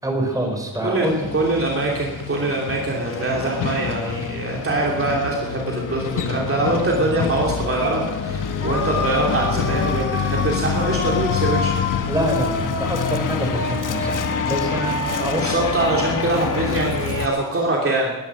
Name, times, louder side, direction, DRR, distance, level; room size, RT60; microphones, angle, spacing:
voice 1, 0.0-1.1 12.1-15.4, right 1 dB, 10° right, 1 dB, 4.4 m, -26 dB
Truck, 1.0-17.3, left 7 dB, 60° left, 1.2 m, -27 dB
voice 2, 1.3-11.7 15.0-18.2, right 2 dB, 35° right, -2 dB, 3.1 m, -23 dB
sound 1, 3.0-17.3, left 3 dB, 35° left, 1.5 m, -30 dB
21.0 x 11.0 x 6.3 m, 1.1 s
cardioid pair, 115°, 36 cm